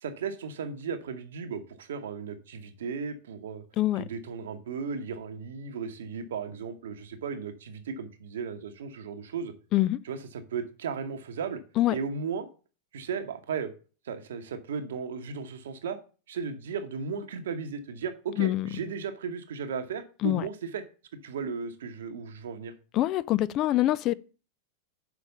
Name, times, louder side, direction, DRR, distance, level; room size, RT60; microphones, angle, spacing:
voice 1, 0.0-3.6 4.0-9.5 10.0-11.6 11.9-12.5 12.9-13.7 14.0-16.0 16.3-20.8 21.2-22.7, right 6 dB, 60° right, 1.0 m, -35 dB
voice 2, 18.4-18.7 20.2-20.5 22.9-24.1, left 15 dB, 35° left, 0.3 m, -25 dB
6.0 x 5.0 x 6.5 m
figure-of-eight pair, 90°, 0 cm